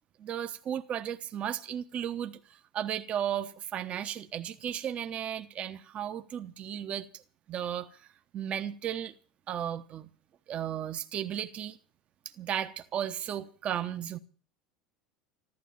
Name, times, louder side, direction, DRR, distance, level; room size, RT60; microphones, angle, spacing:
voice 1, 0.2-7.2 7.5-8.0 8.3-9.1 9.5-10.1 10.5-11.8 12.4-14.2, right 10 dB, 45° right, 1.0 m, -35 dB
14.5 x 12.0 x 7.2 m
hypercardioid pair, 85°, 3 cm